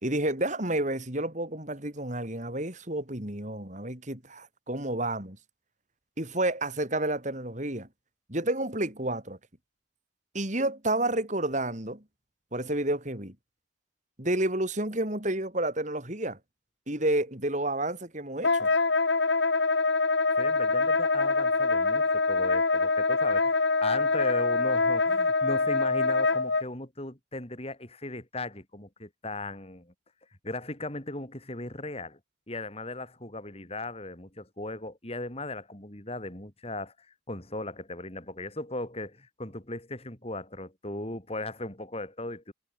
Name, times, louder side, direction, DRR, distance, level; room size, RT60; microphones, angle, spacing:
voice 1, 0.0-5.4 6.2-7.9 8.3-9.4 10.3-12.0 12.5-13.3 14.2-16.4 16.9-18.7, right 1 dB, 40° right, 4.0 m, -30 dB
Wind instrument woodwind instrument, 18.4-26.6, left 3 dB, 60° left, 1.4 m, -25 dB
voice 2, 20.4-29.9 30.4-32.2 32.5-42.5, left 2 dB, 30° left, 3.3 m, -37 dB
head